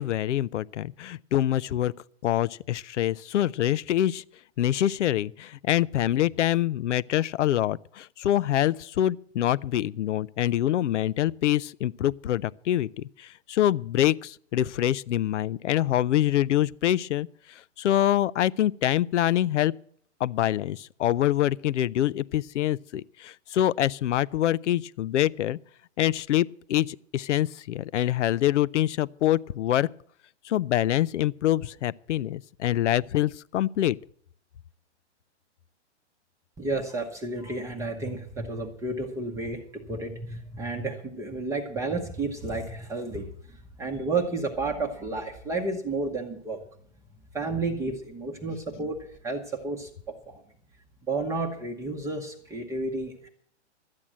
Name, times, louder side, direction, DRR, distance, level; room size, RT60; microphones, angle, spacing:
voice 1, 0.0-1.9 2.2-4.2 4.6-19.7 20.2-25.6 26.0-29.9 30.4-34.0, left 12 dB, 80° left, 0.6 m, -25 dB
voice 2, 36.6-46.6 47.3-49.9 50.3-50.4 51.1-53.3, right 3 dB, 10° right, 0.8 m, -31 dB
12.5 x 8.7 x 7.4 m
hypercardioid pair, 150°, 35 cm